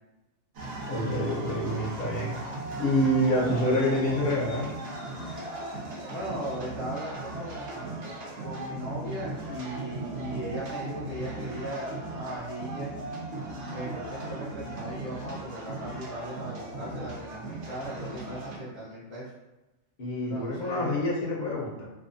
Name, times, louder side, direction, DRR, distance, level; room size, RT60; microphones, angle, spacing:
sound 1, 0.5-18.6, right 2 dB, 65° right, 0.9 m, -37 dB
voice 1, 0.9-2.3 2.8-4.7 20.0-21.8, equal, 55° left, -4 dB, 0.5 m, -27 dB
voice 2, 6.1-8.1 8.4-12.9 13.7-19.3 20.3-21.0, right 1 dB, 10° right, -11 dB, 0.5 m, -38 dB
2.6 x 2.3 x 2.5 m, 1.0 s
omnidirectional pair, 1.4 m